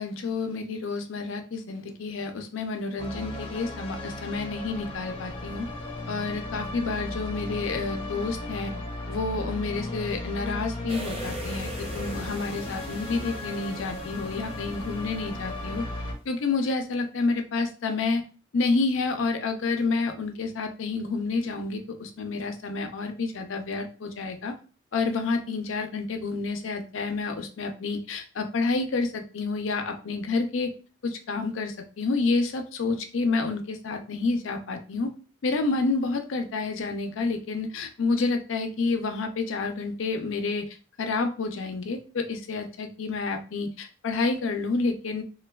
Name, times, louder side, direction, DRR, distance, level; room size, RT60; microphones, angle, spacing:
voice 1, 0.0-5.7 6.1-8.7 9.1-15.9 16.3-18.2 18.5-24.5 24.9-30.7 31.0-35.1 35.4-40.6 41.0-45.2, left 3 dB, 85° left, 5 dB, 0.5 m, -29 dB
sound 1, 3.0-16.1, left 2 dB, 25° left, 0.6 m, -36 dB
sound 2, 10.9-15.7 16.0-16.1, right 1 dB, 30° right, 0.5 m, -41 dB
3.1 x 2.2 x 2.2 m, 0.35 s
head